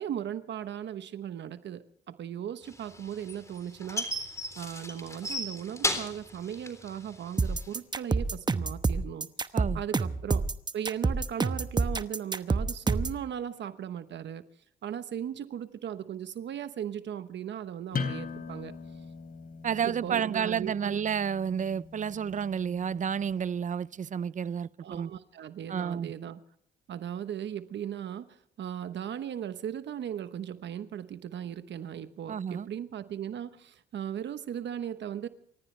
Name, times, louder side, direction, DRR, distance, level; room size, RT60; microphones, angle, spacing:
voice 1, 0.0-4.2 4.6-9.3 9.7-10.4 10.7-14.4 14.8-18.7 19.8-21.0 24.8-26.4 26.9-35.3, right 9 dB, 65° right, 1.1 m, -37 dB
sound 1, 2.7-7.7, left 1 dB, 15° left, 3.6 m, -34 dB
sound 2, 7.4-13.2, right 3 dB, 20° right, 1.0 m, -28 dB
sound 3, 17.9-23.3, left 5 dB, 45° left, 3.5 m, -40 dB
voice 2, 19.6-25.1 25.7-26.1 32.3-32.7, right 8 dB, 40° right, 0.6 m, -31 dB
29.5 x 14.5 x 3.3 m
cardioid pair, 90°, 20 cm